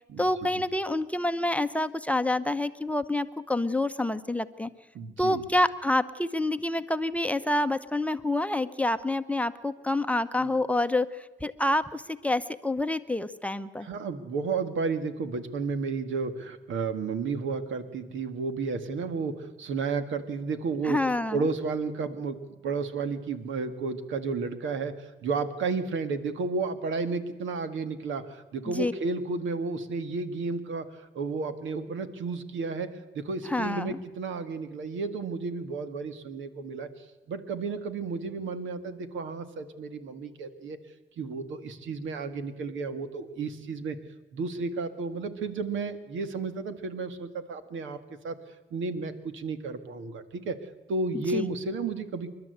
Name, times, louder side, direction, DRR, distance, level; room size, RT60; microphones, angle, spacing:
voice 1, 0.2-4.7 5.2-13.9 20.8-21.5 28.7-28.9 33.5-34.0 51.1-51.5, left 1 dB, 5° left, 10 dB, 0.8 m, -28 dB
voice 2, 4.9-5.4 10.4-10.5 13.8-21.0 21.3-40.8 41.2-44.0 44.3-48.0 48.2-48.4 48.7-50.6 50.9-52.3, right 4 dB, 75° right, 10 dB, 2.0 m, -32 dB
28.5 x 12.0 x 8.0 m, 1.2 s
cardioid pair, 90°, 20 cm